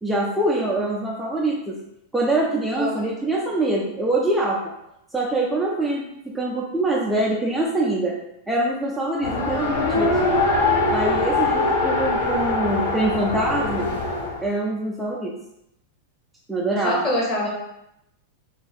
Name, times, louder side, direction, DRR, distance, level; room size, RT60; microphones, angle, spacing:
voice 1, 0.0-1.8 2.1-4.7 5.1-8.2 8.5-10.4 10.9-13.9 14.4-15.3 16.5-17.1, right 2 dB, 5° right, -4 dB, 0.4 m, -24 dB
voice 2, 2.7-3.1 16.8-17.5, equal, 35° left, -4 dB, 1.3 m, -24 dB
Race car auto racing, 9.2-14.4, left 2 dB, 80° left, 0.8 m, -22 dB
2.6 x 2.3 x 3.3 m, 0.84 s
hypercardioid pair, 110°, 0 cm